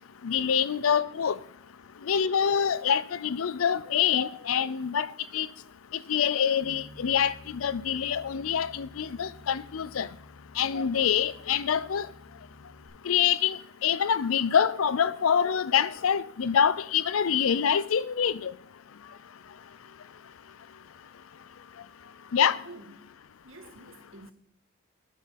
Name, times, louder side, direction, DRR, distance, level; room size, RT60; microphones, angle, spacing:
voice 1, 0.2-1.4 2.1-5.1 5.3-5.5 6.1-10.1 10.6-12.1 13.1-18.5 22.3-22.6, left 8 dB, 80° left, 0.5 m, -25 dB
Bass guitar, 6.6-12.9, left 1 dB, 20° right, 2.1 m, -51 dB
voice 2, 22.5-23.0 23.4-24.3, right 2 dB, 70° right, 1.9 m, -48 dB
9.2 x 9.2 x 5.8 m
head